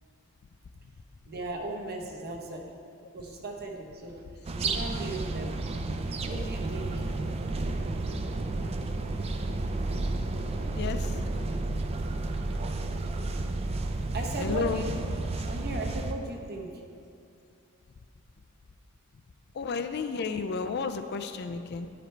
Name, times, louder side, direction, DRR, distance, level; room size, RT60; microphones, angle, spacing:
voice 1, 1.3-2.7 3.1-4.2 4.6-5.5 6.3-7.0 14.1-14.9 15.5-16.7, right 2 dB, 45° right, 2 dB, 0.8 m, -37 dB
sound 1, 4.4-16.1, right 2 dB, 30° right, 0.4 m, -31 dB
voice 2, 10.7-11.3 14.4-14.9 19.5-21.9, left 5 dB, 50° left, 8 dB, 0.4 m, -32 dB
10.5 x 5.0 x 4.4 m, 2.4 s
head